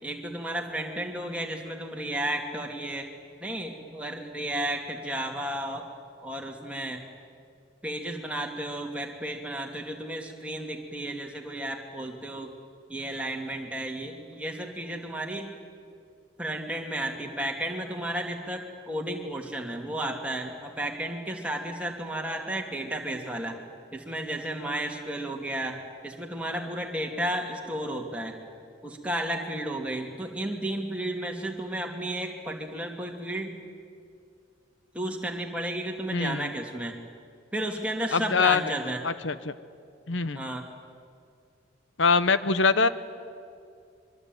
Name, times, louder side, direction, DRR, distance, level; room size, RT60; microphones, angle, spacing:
voice 1, 0.0-3.1 3.4-5.9 6.2-7.0 7.8-12.5 12.9-15.5 16.4-23.6 23.9-25.8 26.0-28.4 28.8-33.6 34.9-36.9 37.5-39.0 40.3-40.6, right 1 dB, 5° right, 1 dB, 2.6 m, -33 dB
voice 2, 36.1-36.5 38.1-38.6 39.0-39.5 40.1-40.4 42.0-42.9, left 4 dB, 70° left, 14 dB, 0.8 m, -23 dB
25.5 x 24.0 x 9.4 m, 2.4 s
head